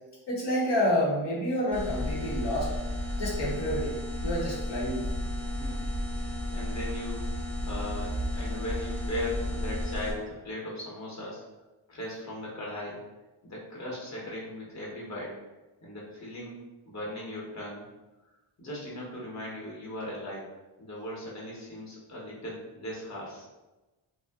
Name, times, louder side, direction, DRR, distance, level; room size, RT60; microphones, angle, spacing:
voice 1, 0.3-2.7 3.2-4.0 4.2-5.0, equal, 65° left, -5 dB, 0.9 m, -28 dB
sound 1, 1.7-10.1, left 1 dB, 5° left, 0.5 m, -33 dB
voice 2, 5.5-5.9 6.1-7.2 7.6-11.4 11.9-13.0 13.4-15.3 15.8-16.6 16.9-17.9 18.6-23.5, left 1 dB, 35° left, -4 dB, 0.9 m, -38 dB
2.6 x 2.1 x 3.5 m, 1.1 s
wide cardioid pair, 105°, 46 cm